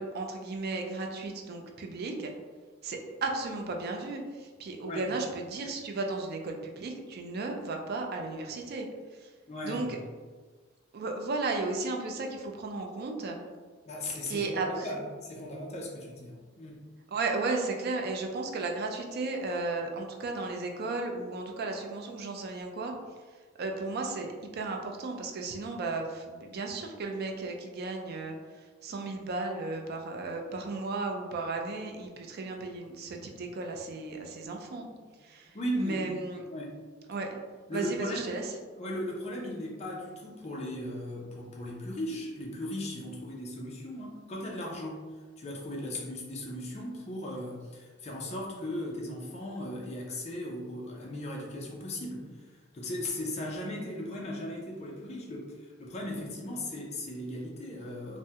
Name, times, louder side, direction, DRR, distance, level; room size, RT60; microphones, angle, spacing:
voice 1, 0.0-2.3 2.8-8.9 9.2-9.3 9.6-10.0 10.9-13.4 14.3-14.9 17.1-22.9 23.6-34.9 35.2-36.4 37.1-37.3 37.7-38.5, right 3 dB, 55° right, 2 dB, 0.4 m, -34 dB
voice 2, 9.5-10.0 13.9-16.9 35.5-36.1 36.5-36.8 37.7-38.4 38.8-45.1 45.4-58.2, left 1 dB, 35° left, -3 dB, 0.5 m, -37 dB
3.4 x 2.1 x 2.8 m, 1.4 s
head